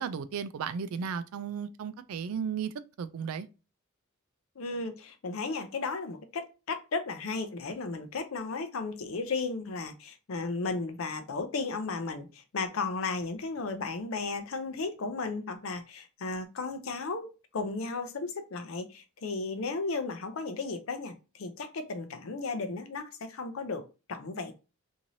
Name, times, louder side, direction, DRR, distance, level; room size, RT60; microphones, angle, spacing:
voice 1, 0.0-3.5, right 7 dB, 80° right, 0.3 m, -35 dB
voice 2, 4.6-24.5, left 3 dB, 70° left, 0.5 m, -35 dB
3.0 x 2.6 x 2.6 m
head